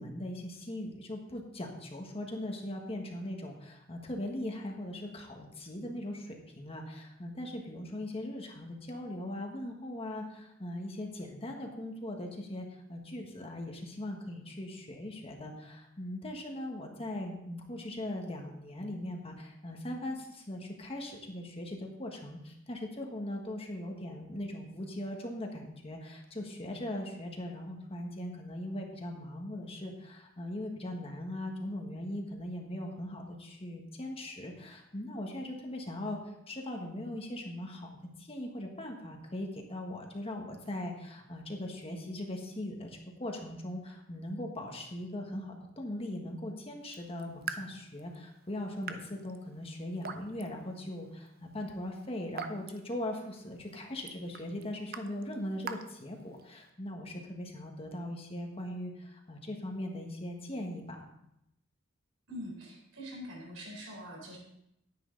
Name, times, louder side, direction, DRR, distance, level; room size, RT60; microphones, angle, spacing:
voice 1, 0.0-61.1, left 1 dB, 30° left, 2 dB, 1.5 m, -40 dB
Raindrop / Drip, 46.8-56.7, right 6 dB, 50° right, 0.7 m, -47 dB
voice 2, 62.3-64.4, equal, 80° right, -1 dB, 4.1 m, -44 dB
10.5 x 9.8 x 4.0 m, 0.81 s
head